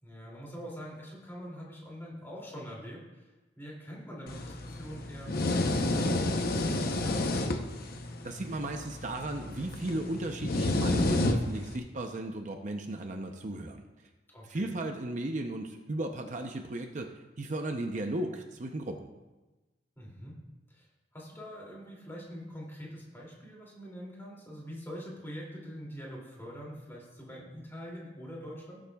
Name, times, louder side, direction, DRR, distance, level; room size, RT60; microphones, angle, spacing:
voice 1, 0.0-3.2 3.6-7.4 14.3-14.6 20.0-20.3 20.7-20.9 21.1-28.8, equal, 15° left, -4 dB, 2.7 m, -44 dB
sound 1, 4.3-11.8, left 2 dB, 55° left, 0.8 m, -30 dB
voice 2, 8.2-13.9 14.4-19.1, right 1 dB, 45° right, 4 dB, 0.7 m, -35 dB
18.5 x 7.3 x 2.3 m, 1.1 s
head